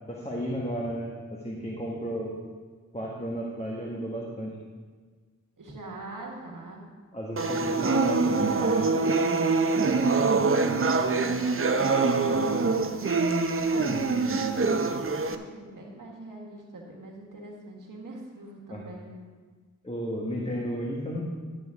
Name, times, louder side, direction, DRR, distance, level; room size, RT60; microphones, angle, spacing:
voice 1, 0.1-2.3 2.9-4.5 7.1-8.6 13.8-14.0 18.7-18.8 19.8-21.2, equal, 20° left, -2 dB, 1.4 m, -33 dB
voice 2, 5.6-6.9 7.4-12.7 13.5-19.2, right 2 dB, 85° right, 0 dB, 1.7 m, -42 dB
sound 1, 7.4-15.3, right 4 dB, 45° right, 0.6 m, -24 dB
11.5 x 9.0 x 3.6 m, 1.5 s
wide cardioid pair, 70°, 31 cm